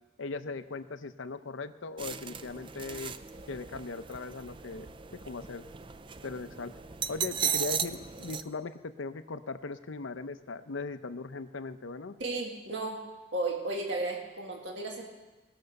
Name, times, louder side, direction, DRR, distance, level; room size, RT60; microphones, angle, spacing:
voice 1, 0.2-3.2 3.5-4.9 5.3-5.6 6.2-6.7 7.1-12.1, left 4 dB, 90° left, 11 dB, 0.6 m, -39 dB
sound 1, 2.0-8.4, right 7 dB, 25° right, 0.4 m, -37 dB
voice 2, 12.2-13.0 13.3-15.0, right 2 dB, 70° right, 1 dB, 1.9 m, -34 dB
18.5 x 6.8 x 6.5 m, 1.1 s
head